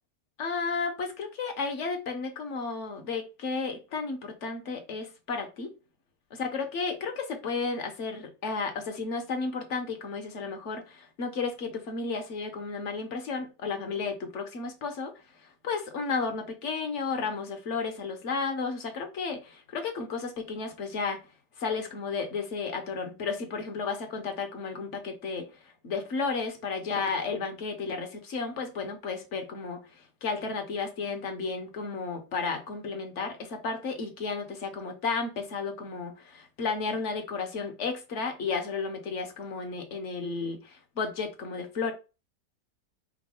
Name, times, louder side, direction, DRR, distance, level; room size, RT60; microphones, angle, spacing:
voice 1, 0.4-5.7 6.3-15.1 15.6-21.2 21.6-25.5 25.8-29.8 30.2-41.9, left 4 dB, 55° left, 1.1 m, -33 dB
4.9 x 2.2 x 3.6 m
omnidirectional pair, 1.8 m